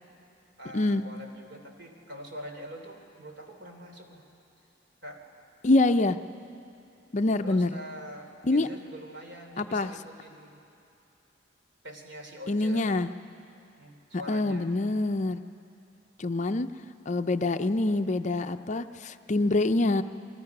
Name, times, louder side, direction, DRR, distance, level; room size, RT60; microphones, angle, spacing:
voice 1, 0.6-4.2 5.0-5.2 7.4-10.6 11.8-12.8 13.8-14.7, equal, 65° right, 3 dB, 3.1 m, -44 dB
voice 2, 5.6-6.2 7.1-7.7 8.4-8.7 9.6-9.9 12.5-13.1 14.3-15.4 16.2-16.7 17.1-20.0, left 2 dB, 40° left, 9 dB, 0.5 m, -25 dB
29.5 x 21.0 x 5.9 m, 2.7 s
head